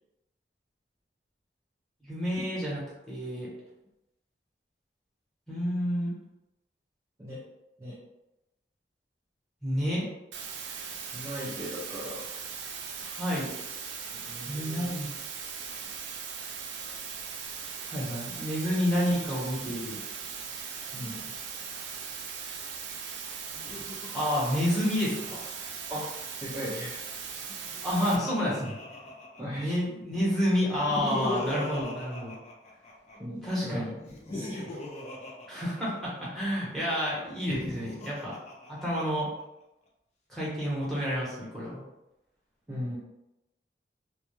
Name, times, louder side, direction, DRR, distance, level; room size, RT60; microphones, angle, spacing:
voice 1, 2.0-2.8 3.1-3.5 5.5-6.1 9.6-10.0 13.0-13.5 14.4-15.1 17.9-20.0 24.1-25.4 27.8-28.7 29.5-32.4 33.4-33.9 35.5-38.3 38.7-39.3 40.3-41.8, equal, ahead, -8 dB, 0.9 m, -29 dB
sound 1, 10.3-28.2, right 6 dB, 90° right, 0.4 m, -39 dB
voice 2, 11.1-12.3 14.1-14.9 20.9-21.4 25.9-26.1 26.4-27.0 29.4-29.8 33.1-34.0 34.3-34.8 42.7-43.0, equal, 15° right, -9 dB, 0.4 m, -38 dB
Laughter, 23.5-26.1 27.4-29.8 30.6-33.2 34.0-36.4 37.3-39.2, left 1 dB, 40° left, 0.5 m, -39 dB
2.2 x 2.2 x 2.9 m, 0.93 s
head